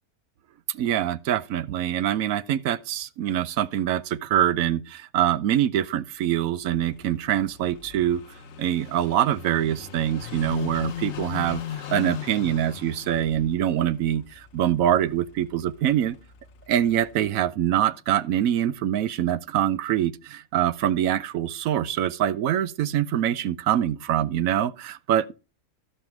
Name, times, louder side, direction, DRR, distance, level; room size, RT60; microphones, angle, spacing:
voice 1, 0.7-8.2 8.6-16.2 16.7-25.3, right 11 dB, 70° right, 1.0 m, -24 dB
Car passing by / Idling, 6.6-17.3, left 9 dB, 55° left, 1.0 m, -39 dB
13.5 x 5.6 x 4.4 m
omnidirectional pair, 1.7 m